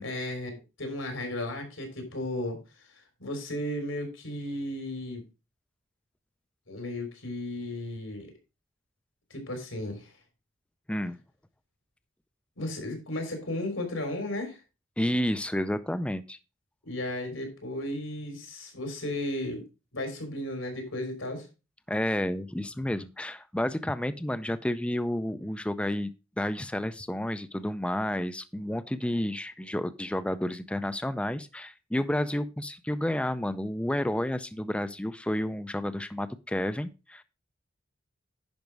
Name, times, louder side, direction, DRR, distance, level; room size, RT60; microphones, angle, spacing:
voice 1, 0.0-2.6 3.2-5.2 6.7-8.3 9.3-10.1 12.6-14.6 16.8-19.6 19.9-21.5, left 1 dB, 90° left, 4 dB, 3.6 m, -34 dB
voice 2, 15.0-16.4 21.9-26.1 26.4-37.2, left 1 dB, 5° left, 12 dB, 0.5 m, -30 dB
10.5 x 5.1 x 4.6 m, 0.29 s
head